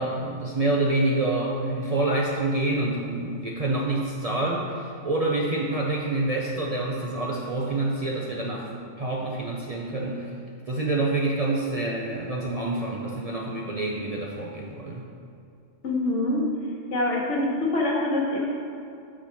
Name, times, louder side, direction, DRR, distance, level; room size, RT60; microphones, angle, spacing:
voice 1, 0.0-8.7 9.0-10.3 10.7-15.1, right 2 dB, 40° right, -3 dB, 0.5 m, -27 dB
voice 2, 15.8-16.5 16.9-18.5, left 2 dB, 70° left, -2 dB, 1.5 m, -25 dB
6.9 x 4.8 x 4.4 m, 2.6 s
omnidirectional pair, 1.3 m